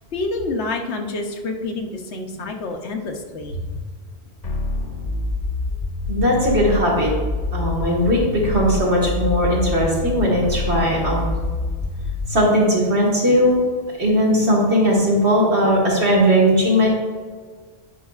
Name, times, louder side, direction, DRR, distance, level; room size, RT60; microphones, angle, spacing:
voice 1, 0.1-3.7, left 2 dB, 85° left, 4 dB, 1.1 m, -28 dB
sound 1, 4.4-12.4, left 3 dB, 45° left, 0.9 m, -26 dB
voice 2, 6.1-7.1 7.5-11.3 12.3-13.6 14.0-16.9, equal, 80° right, -4 dB, 1.9 m, -18 dB
9.7 x 5.3 x 2.4 m, 1.5 s
omnidirectional pair, 1.1 m